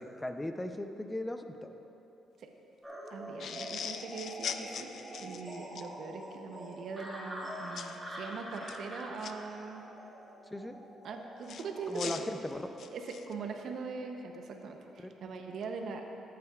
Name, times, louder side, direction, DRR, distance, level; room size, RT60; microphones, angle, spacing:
voice 1, 0.0-1.7 10.5-10.8 11.9-12.7 15.0-15.1, left 1 dB, 15° left, 7 dB, 0.6 m, -38 dB
sound 1, 2.8-11.9, equal, 10° right, 1.9 m, -45 dB
voice 2, 3.1-4.9 5.2-9.8 11.0-12.1 12.8-16.0, right 4 dB, 65° right, 3 dB, 0.8 m, -41 dB
sound 2, 3.4-5.9 7.8-8.0 8.5-9.3 11.5-13.3, left 7 dB, 65° left, 0.4 m, -41 dB
14.0 x 8.4 x 2.4 m, 2.9 s
cardioid pair, 90°, 0 cm